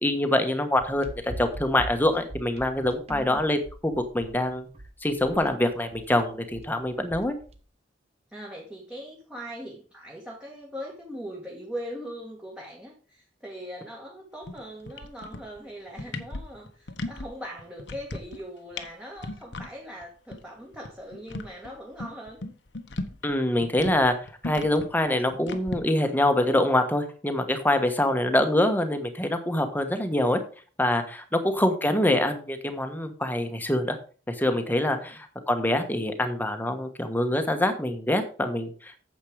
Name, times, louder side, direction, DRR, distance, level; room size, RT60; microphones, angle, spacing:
voice 1, 0.0-4.7 5.0-7.3 23.2-24.1 24.4-30.4 30.8-34.0 34.3-39.0, left 1 dB, 10° left, 7 dB, 1.3 m, -25 dB
sound 1, 0.8-7.6, right 1 dB, 35° right, 1.1 m, -42 dB
voice 2, 3.1-3.4 8.3-22.4 31.3-31.6 35.0-35.1, equal, 5° right, -1 dB, 1.6 m, -40 dB
sound 2, 14.4-14.6 14.9-15.6 15.9-17.3 17.6-18.4 18.7-18.9 19.2-19.7 20.0-20.1 20.3-20.4 20.7-23.3 23.6-25.8, left 2 dB, 75° left, 1.2 m, -36 dB
9.0 x 7.6 x 4.9 m, 0.39 s
head